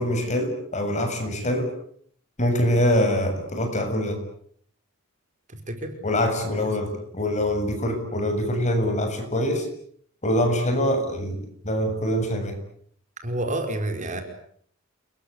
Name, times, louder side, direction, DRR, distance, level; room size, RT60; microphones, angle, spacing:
voice 1, 0.0-1.7 2.4-4.2 6.0-9.7 10.2-12.6, equal, 35° left, 6 dB, 7.4 m, -24 dB
voice 2, 5.5-5.9 6.4-6.6 13.2-14.2, right 1 dB, 35° right, 6 dB, 5.3 m, -29 dB
30.0 x 23.0 x 8.5 m, 0.64 s
head